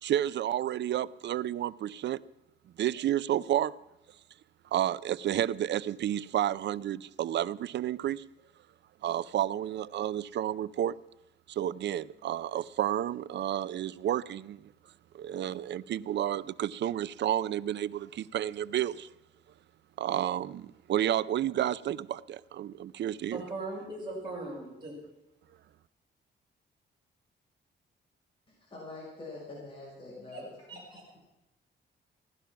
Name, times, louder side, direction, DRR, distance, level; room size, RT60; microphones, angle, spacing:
voice 1, 0.0-2.2 2.8-3.7 4.7-8.2 9.0-10.9 11.5-14.7 15.1-19.1 20.0-23.4, right 11 dB, 70° right, 0.5 m, -31 dB
voice 2, 23.3-25.0 30.3-30.4 30.7-31.2, right 2 dB, 25° right, 5.7 m, -39 dB
voice 3, 28.5-30.5, left 2 dB, 25° left, 6.0 m, -45 dB
16.5 x 11.5 x 5.9 m
cardioid pair, 125°, 19 cm